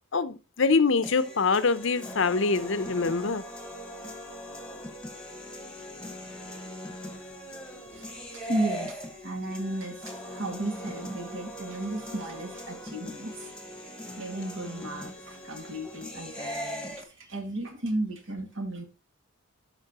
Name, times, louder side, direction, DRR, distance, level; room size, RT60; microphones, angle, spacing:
voice 1, 0.1-3.4, left 4 dB, 60° left, 0.7 m, -24 dB
sound 1, 1.0-17.0, equal, 5° left, 1.4 m, -40 dB
voice 2, 7.9-13.5 14.2-18.8, right 1 dB, 60° right, 2.1 m, -34 dB
12.0 x 5.5 x 2.9 m
head